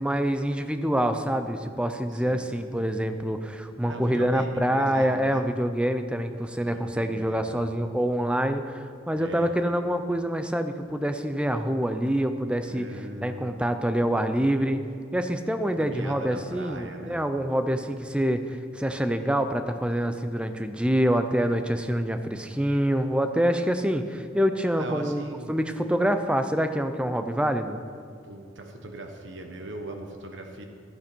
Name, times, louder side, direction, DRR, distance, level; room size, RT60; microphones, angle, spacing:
voice 1, 0.0-12.9 13.2-14.8 15.1-25.2 25.5-27.8, equal, 5° right, 8 dB, 0.6 m, -26 dB
voice 2, 2.1-2.5 3.8-5.4 6.6-7.7 9.2-9.5 12.7-13.6 15.8-17.2 24.7-25.6 28.2-30.6, right 2 dB, 70° right, 4 dB, 1.3 m, -39 dB
15.0 x 12.5 x 4.5 m, 2.2 s
head